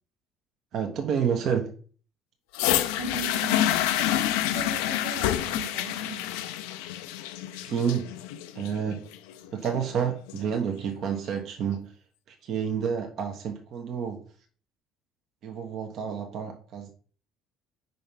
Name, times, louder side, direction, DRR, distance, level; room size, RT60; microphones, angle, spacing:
voice 1, 0.7-1.7 7.7-8.1 8.5-9.0 9.5-11.9 12.3-14.2 15.4-16.9, right 7 dB, 50° right, 1.0 m, -29 dB
sound 1, 2.5-10.5 11.4-11.5, left 12 dB, 65° left, 0.4 m, -28 dB
voice 2, 2.9-6.2, right 5 dB, 80° right, 1.3 m, -39 dB
5.5 x 4.1 x 5.2 m
figure-of-eight pair, 55°, 0 cm